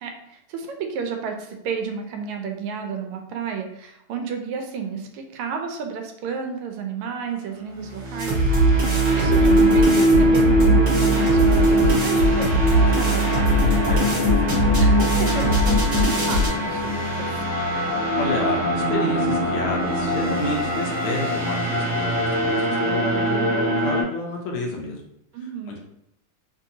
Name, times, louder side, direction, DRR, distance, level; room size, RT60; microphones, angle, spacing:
voice 1, 0.0-8.4 8.7-13.4 14.2-17.4 25.3-25.8, right 6 dB, 85° right, 4 dB, 1.5 m, -32 dB
sound 1, 7.8-24.0, equal, 55° right, 0.7 m, -22 dB
sound 2, 8.2-16.5, right 1 dB, 40° right, 1.2 m, -21 dB
voice 2, 9.2-9.6 13.9-14.2 18.2-25.0 25.7-25.8, left 2 dB, 75° left, 0 dB, 1.4 m, -30 dB
3.8 x 2.7 x 2.7 m, 0.78 s
omnidirectional pair, 2.4 m